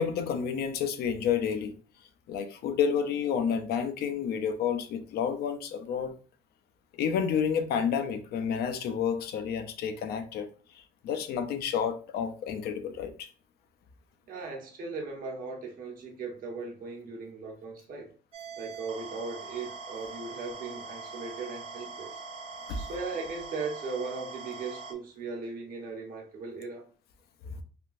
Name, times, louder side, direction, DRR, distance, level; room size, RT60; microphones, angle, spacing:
voice 1, 0.0-1.8 2.3-6.1 7.0-10.5 11.0-13.3 22.7-22.8 27.5-27.6, left 7 dB, 70° left, 0.5 m, -30 dB
voice 2, 14.3-18.1 18.6-22.2 22.8-26.8, right 4 dB, 55° right, 1.1 m, -38 dB
sound 1, 18.3-24.9, right 4 dB, 35° right, 0.4 m, -42 dB
3.5 x 2.3 x 2.5 m
cardioid pair, 110°, 17 cm